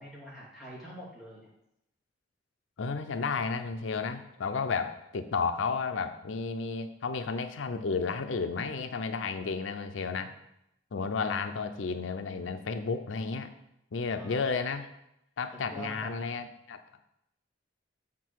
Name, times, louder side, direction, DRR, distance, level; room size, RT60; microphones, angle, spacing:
voice 1, 0.0-1.5 10.0-10.4 14.1-14.5 15.7-16.2, right 1 dB, 5° right, -7 dB, 2.8 m, -45 dB
voice 2, 2.8-10.3 10.9-13.5 13.9-14.9 15.4-17.0, left 4 dB, 90° left, 8 dB, 0.5 m, -32 dB
7.3 x 6.0 x 4.7 m, 0.81 s
head